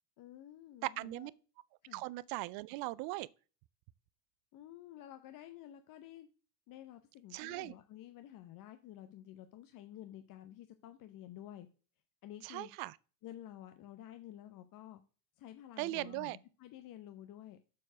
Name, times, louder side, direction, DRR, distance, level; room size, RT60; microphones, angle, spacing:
voice 1, 0.2-1.3 1.8-2.1 4.5-6.3 6.7-11.7 12.2-12.7 13.2-15.0 15.4-17.6, left 12 dB, 45° left, 0.8 m, -51 dB
voice 2, 0.8-1.3 1.9-3.3 7.3-7.7 12.4-12.9 15.8-16.4, right 20 dB, 50° right, 0.5 m, -39 dB
7.4 x 4.5 x 5.9 m
supercardioid pair, 105°, 48 cm